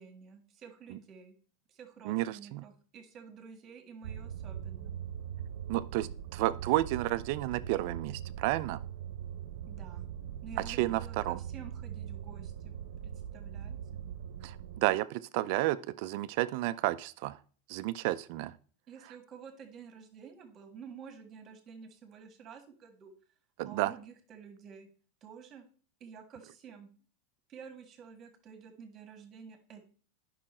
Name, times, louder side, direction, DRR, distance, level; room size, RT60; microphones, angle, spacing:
voice 1, 0.0-1.4 1.7-5.0 9.7-10.1 10.4-12.7 13.0-14.0 18.9-23.1 23.6-24.9 25.2-25.6 26.0-26.9 27.5-29.8, right 6 dB, 25° right, 6 dB, 1.7 m, -50 dB
voice 2, 2.1-2.6 5.7-8.8 10.7-11.4 14.4-17.4 17.7-18.5 23.6-23.9, right 17 dB, 55° right, 14 dB, 0.5 m, -31 dB
sound 1, 4.0-14.8, right 9 dB, 90° right, 0.8 m, -41 dB
9.9 x 5.7 x 4.3 m, 0.41 s
supercardioid pair, 155°, 0 cm